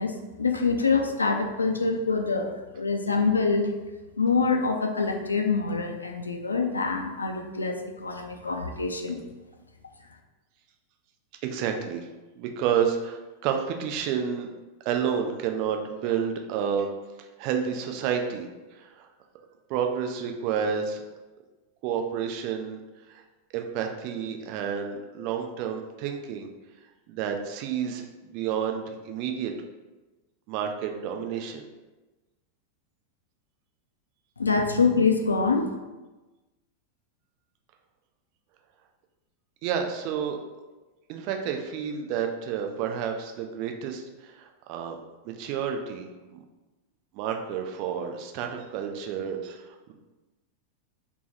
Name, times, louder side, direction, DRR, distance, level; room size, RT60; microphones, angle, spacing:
voice 1, 0.0-3.7 4.2-9.2 34.4-35.7, left 4 dB, 75° left, 3 dB, 0.3 m, -25 dB
voice 2, 11.4-12.1 12.4-14.5 14.9-16.9 17.2-19.1 19.7-21.0 21.8-22.8 23.1-23.2 23.5-26.5 27.1-29.5 30.5-31.6 39.6-40.5 41.1-45.0 45.2-46.4 47.1-49.9, right 7 dB, 45° right, 4 dB, 0.4 m, -30 dB
3.3 x 2.0 x 4.1 m, 1.2 s
figure-of-eight pair, 90°, 0 cm